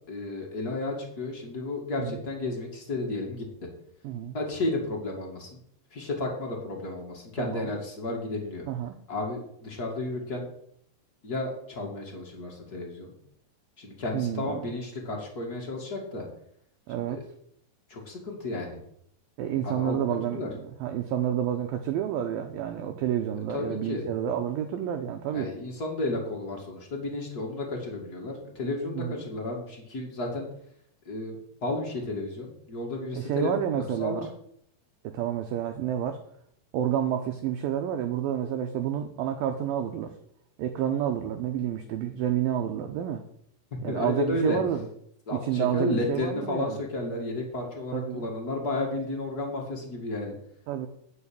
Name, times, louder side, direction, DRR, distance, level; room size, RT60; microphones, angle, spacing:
voice 1, 0.1-3.4 4.3-5.5 5.9-8.7 9.1-10.5 11.2-13.1 13.8-16.2 17.0-17.2 17.9-18.8 19.6-20.5 23.5-24.0 25.3-30.5 31.0-33.5 33.8-34.2 43.9-44.6 45.3-50.3, left 2 dB, 35° left, 0 dB, 1.5 m, -32 dB
voice 2, 4.0-4.4 7.4-7.7 8.7-9.0 14.1-14.7 16.9-17.2 19.4-25.5 28.9-29.3 33.1-34.3 35.0-36.2 36.7-40.1 40.6-43.2 43.8-44.9 45.3-46.8 47.9-48.3 50.7-50.9, right 10 dB, 80° right, 5 dB, 2.1 m, -29 dB
9.6 x 5.8 x 8.5 m, 0.70 s
omnidirectional pair, 4.9 m